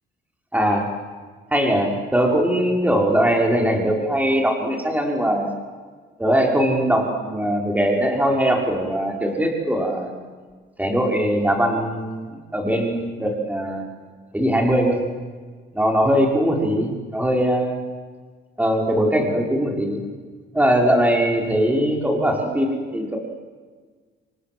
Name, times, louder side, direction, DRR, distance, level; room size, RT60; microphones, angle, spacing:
voice 1, 0.5-0.9 1.5-5.5 6.2-10.1 10.8-12.2 12.5-13.8 14.3-15.0 15.7-17.8 18.6-20.0 20.5-23.2, equal, 10° right, 1 dB, 5.8 m, -21 dB
28.5 x 25.0 x 7.9 m, 1.5 s
cardioid pair, 90°, 20 cm